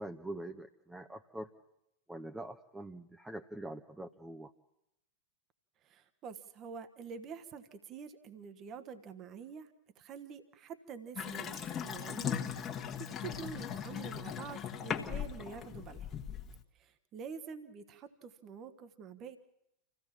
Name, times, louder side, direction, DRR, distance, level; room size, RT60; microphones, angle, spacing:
voice 1, 0.0-1.5 2.1-4.5, right 1 dB, 5° right, 5 dB, 1.0 m, -44 dB
voice 2, 5.8-16.1 16.7-19.4, right 6 dB, 35° right, 10 dB, 1.4 m, -47 dB
Water tap faucet / Sink (filling or washing) / Bathtub (filling or washing), 11.2-16.6, left 8 dB, 25° left, 1.6 m, -39 dB
26.5 x 16.0 x 7.3 m, 0.82 s
figure-of-eight pair, 90°, 0 cm